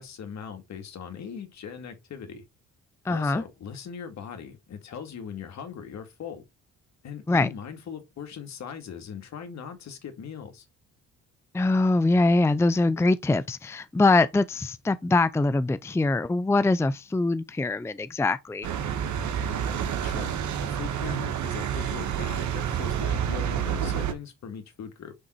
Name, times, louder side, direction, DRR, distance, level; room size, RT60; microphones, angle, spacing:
voice 1, 0.0-2.4 3.1-6.4 7.0-10.7 20.0-20.3 20.6-25.1, left 7 dB, 65° left, 2.3 m, -40 dB
voice 2, 3.1-3.4 7.3-7.5 11.5-18.7, left 2 dB, 10° left, 0.5 m, -23 dB
sound 1, 18.6-24.1, right 8 dB, 70° right, 1.7 m, -29 dB
9.7 x 3.8 x 4.5 m
cardioid pair, 90°, 30 cm